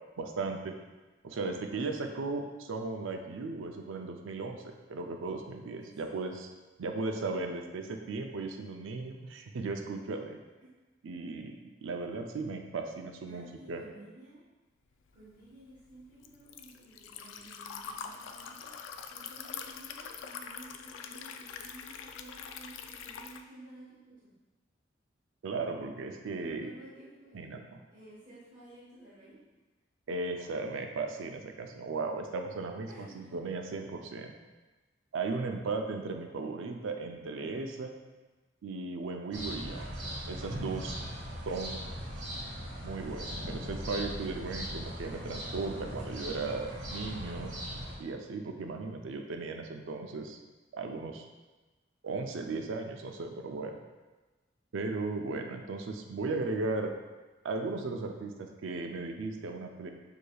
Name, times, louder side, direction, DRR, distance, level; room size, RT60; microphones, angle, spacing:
voice 1, 0.2-0.8 1.2-4.6 4.9-6.5 6.8-10.4 11.0-11.5 11.8-13.8 25.4-26.7 27.3-27.8 30.1-34.3 35.1-37.9 38.6-39.9 40.3-41.0 41.5-41.8 42.8-47.5 48.0-50.4 50.7-51.2 52.0-53.8 54.7-56.9 57.4-59.9, right 3 dB, 85° right, 4 dB, 0.4 m, -36 dB
voice 2, 5.8-6.1 10.6-10.7 13.3-14.4 15.1-18.7 19.1-24.3 26.3-29.4 32.9-33.4 41.5-42.4, right 1 dB, 40° right, -10 dB, 1.2 m, -53 dB
Liquid, 15.1-23.4, left 7 dB, 85° left, 0.3 m, -44 dB
sound 1, 39.3-47.9, equal, 70° right, 1.1 m, -39 dB
6.4 x 2.8 x 2.3 m, 1.2 s
head